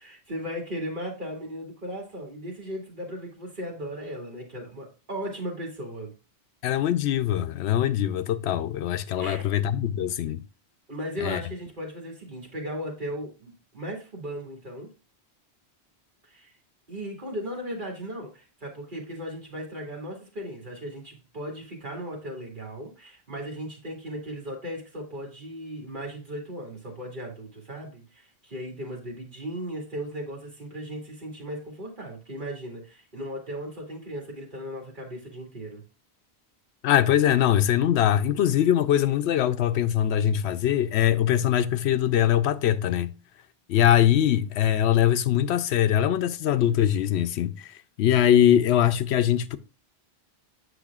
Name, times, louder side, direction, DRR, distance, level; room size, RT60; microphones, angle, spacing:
voice 1, 0.0-6.1 9.2-9.5 10.9-14.9 16.2-16.5 16.9-35.8, equal, 50° right, 2.4 m, -37 dB
voice 2, 6.6-10.4 11.2-11.4 36.8-43.1 43.7-49.6, left 11 dB, 85° left, 0.8 m, -22 dB
8.2 x 6.3 x 2.4 m
omnidirectional pair, 1.1 m